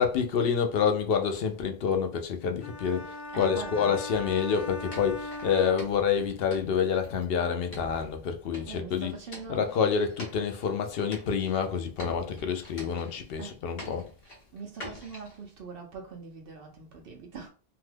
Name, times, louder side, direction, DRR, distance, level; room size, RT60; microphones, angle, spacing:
voice 1, 0.0-9.1 9.5-14.1, left 6 dB, 70° left, 0.8 m, -28 dB
sound 1, 2.6-6.5, left 2 dB, 30° left, 0.5 m, -40 dB
voice 2, 3.3-3.9 8.7-9.7 13.4-13.5 14.5-17.5, right 4 dB, 65° right, 0.8 m, -42 dB
sound 2, 4.1-7.2 7.7-10.9 11.1-11.7 12.0-13.5 13.8-15.4, equal, 45° left, 1.0 m, -46 dB
2.8 x 2.2 x 3.2 m
omnidirectional pair, 1.1 m